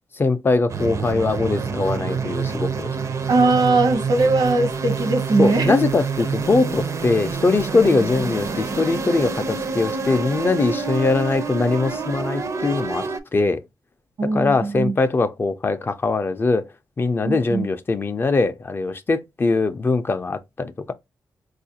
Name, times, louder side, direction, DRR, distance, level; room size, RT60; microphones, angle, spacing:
voice 1, 0.2-2.9 5.4-13.0 13.3-13.6 14.2-16.7 17.0-20.9, left 3 dB, 30° left, 0.4 m, -21 dB
sound 1, 0.7-13.2, right 5 dB, 45° right, 0.4 m, -27 dB
voice 2, 3.3-5.8 14.2-15.0 17.2-17.7, right 3 dB, 75° right, 0.7 m, -20 dB
4.3 x 2.4 x 2.7 m
wide cardioid pair, 125°, 7 cm